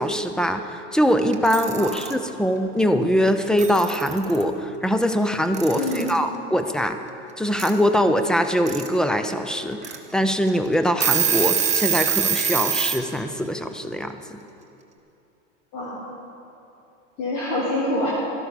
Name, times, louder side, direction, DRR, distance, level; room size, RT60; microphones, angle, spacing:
voice 1, 0.0-7.0 7.4-14.4, equal, ahead, 8 dB, 0.4 m, -22 dB
Alarm / Clock, 1.3-2.1 3.3-3.4 3.6-4.4 5.5-6.2 7.6-7.7 8.4-8.9 9.3-9.4 9.8-10.0 10.5-10.6 10.9-13.0, right 8 dB, 20° right, 1.1 m, -24 dB
voice 2, 5.8-6.1 15.7-16.0 17.2-18.1, left 1 dB, 50° left, -6 dB, 2.7 m, -26 dB
13.0 x 11.5 x 5.0 m, 2.8 s
hypercardioid pair, 100°, 38 cm